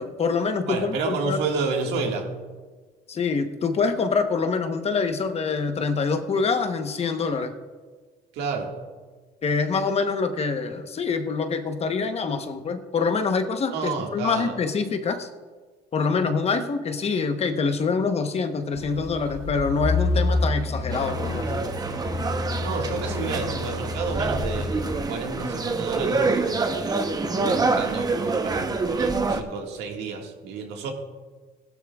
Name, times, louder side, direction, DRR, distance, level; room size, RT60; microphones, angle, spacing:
voice 1, 0.0-1.4 3.1-7.5 9.4-15.3 15.9-21.7, left 4 dB, 40° left, 7 dB, 0.9 m, -25 dB
voice 2, 0.7-2.3 8.3-8.8 13.7-14.6 22.6-24.8 25.1-27.0 27.5-30.9, right 4 dB, 80° right, 2 dB, 1.8 m, -30 dB
sound 1, 18.8-25.0, left 2 dB, 60° left, 2.3 m, -28 dB
sound 2, 20.9-29.4, right 3 dB, 25° right, 0.8 m, -26 dB
16.5 x 12.0 x 2.4 m, 1.4 s
cardioid pair, 110°, 17 cm